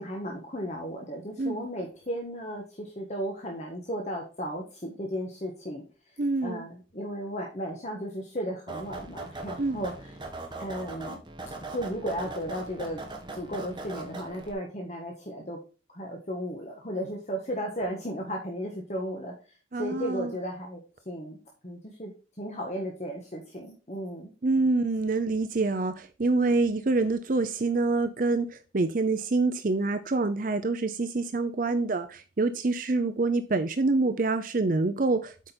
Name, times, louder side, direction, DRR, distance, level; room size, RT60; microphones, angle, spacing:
voice 1, 0.0-6.1 6.4-10.2 10.6-11.2 11.7-13.0 13.3-15.6 15.9-19.3 19.8-22.1 22.4-24.3, equal, 35° left, 1.4 m, -35 dB
voice 2, 6.2-6.7 9.6-9.8 19.7-20.3 24.4-35.5, right 3 dB, 45° right, 0.5 m, -26 dB
sound 1, 8.7-14.5, right 2 dB, 25° right, 1.6 m, -40 dB
8.2 x 5.1 x 4.4 m
head